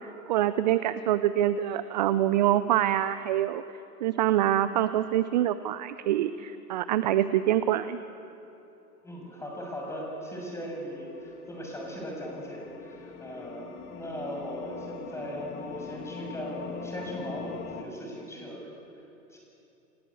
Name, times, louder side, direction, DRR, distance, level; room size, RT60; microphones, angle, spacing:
voice 1, 0.0-3.6 4.0-8.0, right 12 dB, 30° right, 13 dB, 0.5 m, -25 dB
voice 2, 9.0-18.6 19.3-19.4, equal, 5° left, -1 dB, 6.6 m, -38 dB
sound 1, 9.5-17.8, left 7 dB, 20° left, 1.7 m, -43 dB
29.5 x 18.0 x 8.5 m, 2.9 s
figure-of-eight pair, 120°, 48 cm